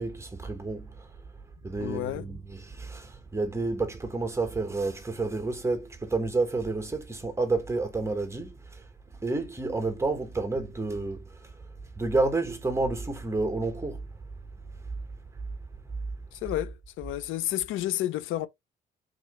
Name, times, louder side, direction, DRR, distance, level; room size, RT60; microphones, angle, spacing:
voice 1, 0.0-11.7 11.9-14.9 15.3-15.4, right 3 dB, 15° right, 1.3 m, -30 dB
voice 2, 1.6-2.3 16.3-18.5, left 14 dB, 85° left, 0.5 m, -31 dB
3.7 x 3.0 x 3.1 m
cardioid pair, 90°, 20 cm